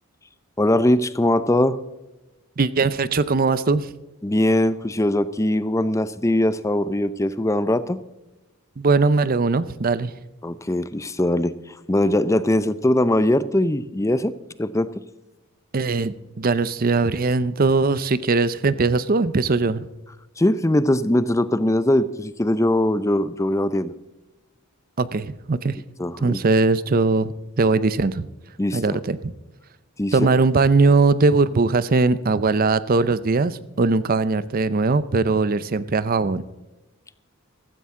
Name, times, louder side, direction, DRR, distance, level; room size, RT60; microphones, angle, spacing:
voice 1, 0.6-1.8 4.2-8.0 10.4-11.6 11.9-14.3 14.6-14.9 20.4-23.9 26.0-26.4 28.6-29.0 30.0-30.1, left 1 dB, 15° left, 15 dB, 0.5 m, -21 dB
voice 2, 2.6-3.9 8.8-10.1 15.7-19.9 25.0-25.8 26.2-28.3 28.7-29.3 30.1-36.4, right 3 dB, 40° right, 16 dB, 0.5 m, -20 dB
15.5 x 14.0 x 3.7 m, 1.0 s
head